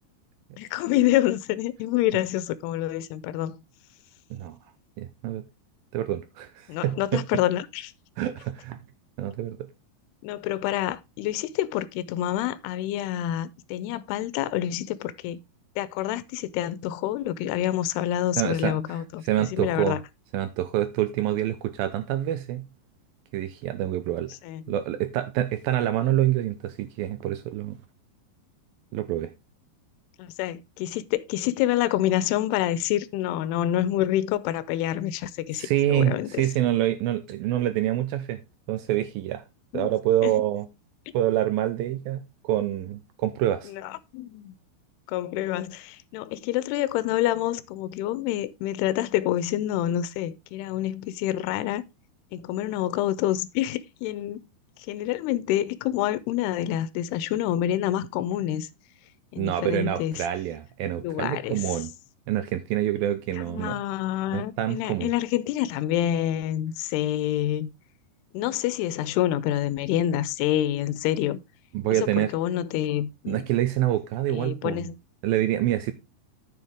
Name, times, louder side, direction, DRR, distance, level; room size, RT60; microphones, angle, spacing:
voice 1, 0.6-3.6 6.7-7.9 10.2-15.4 15.8-19.2 19.5-20.0 24.4-24.6 30.2-36.4 39.7-39.9 40.2-40.3 43.7-44.5 45.1-51.8 52.3-54.4 54.9-58.7 59.3-60.2 61.0-61.6 63.4-67.7 68.3-71.4 72.0-73.5 74.3-75.0, left 13 dB, 80° left, 2.6 m, -27 dB
voice 2, 5.0-5.4 5.9-7.2 8.2-8.8 9.2-9.6 18.4-18.8 19.2-20.0 20.3-22.6 23.3-24.4 24.7-27.8 28.9-29.3 35.5-38.4 38.7-39.4 39.7-40.7 41.1-43.7 59.4-61.9 62.3-63.8 64.3-65.1 71.7-72.3 73.3-74.9 75.2-75.9, right 13 dB, 80° right, 2.2 m, -26 dB
9.5 x 7.2 x 3.5 m
omnidirectional pair, 4.8 m